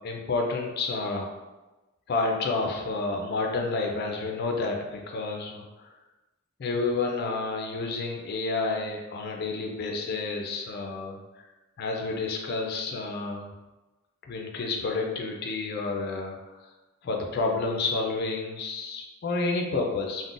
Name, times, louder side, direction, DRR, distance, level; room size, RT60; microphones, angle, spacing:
voice 1, 0.0-1.3 2.1-5.9 6.6-11.2 11.8-13.5 14.3-16.7 17.0-20.3, left 3 dB, 50° left, 1 dB, 0.4 m, -30 dB
3.7 x 2.1 x 2.4 m, 1.1 s
head